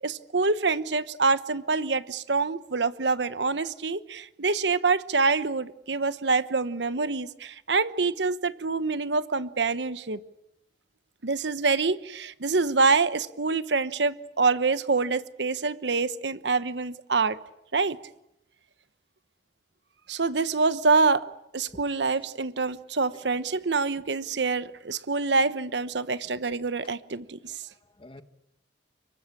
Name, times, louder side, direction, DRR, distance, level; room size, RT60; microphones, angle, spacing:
voice 1, 0.0-10.2 11.2-17.4 17.7-18.0 20.1-21.3 21.5-27.6, right 4 dB, 75° right, 1.1 m, -26 dB
voice 2, 27.4-28.2, left 1 dB, 30° left, 1.6 m, -50 dB
26.0 x 23.0 x 8.6 m
head